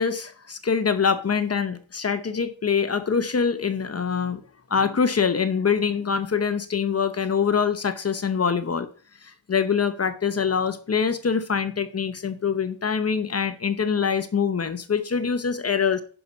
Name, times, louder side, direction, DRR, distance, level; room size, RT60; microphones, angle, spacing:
voice 1, 0.0-4.4 4.7-8.9 9.2-16.0, left 6 dB, 35° left, 0.8 m, -24 dB
10.5 x 5.8 x 4.0 m
wide cardioid pair, 130°, 42 cm